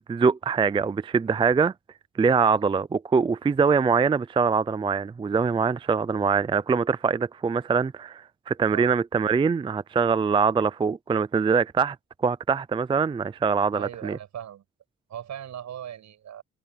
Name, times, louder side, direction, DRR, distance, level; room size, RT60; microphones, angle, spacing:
voice 1, 0.0-1.7 2.2-12.0 12.2-14.2, right 5 dB, 15° right, 0.4 m, -23 dB
voice 2, 13.7-14.6 15.1-16.4, right 10 dB, 65° right, 6.7 m, -39 dB
cardioid pair, 90°, 30 cm